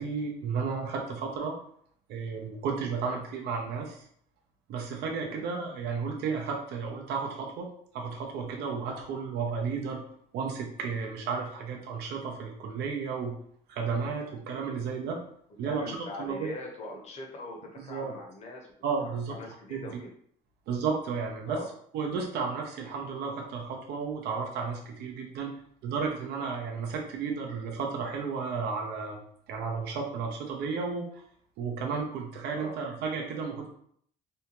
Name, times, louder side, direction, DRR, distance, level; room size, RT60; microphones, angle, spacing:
voice 1, 0.0-1.6 2.1-4.1 4.7-7.7 7.9-10.0 10.3-13.3 13.7-15.2 15.6-16.5 17.9-18.1 18.8-19.3 19.7-19.9 20.7-21.6 21.9-25.5 25.8-29.2 29.5-31.2 31.6-33.7, right 5 dB, 75° right, 1 dB, 0.6 m, -33 dB
voice 2, 15.6-18.7 19.0-20.1 21.5-21.7 32.5-32.7, left 2 dB, 40° left, 1 dB, 0.8 m, -41 dB
2.7 x 2.2 x 2.9 m, 0.63 s
cardioid pair, 110°, 17 cm